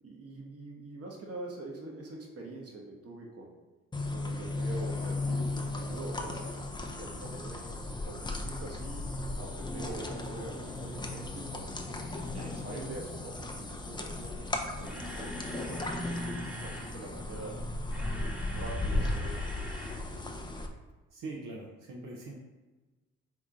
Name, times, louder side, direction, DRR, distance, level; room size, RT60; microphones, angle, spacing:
voice 1, 0.0-3.6 4.1-9.1 9.4-11.7 12.3-17.6 18.0-20.3, right 2 dB, 45° right, 0 dB, 1.1 m, -45 dB
sound 1, 3.9-20.7, left 2 dB, 15° left, 0.5 m, -36 dB
Camera, 14.8-16.9 17.7-20.0 20.3-20.4 20.9-21.0, right 1 dB, 5° right, 0.9 m, -45 dB
voice 2, 21.1-22.4, right 2 dB, 70° right, -3 dB, 0.8 m, -42 dB
3.6 x 3.1 x 3.6 m, 1.2 s
hypercardioid pair, 45°, 34 cm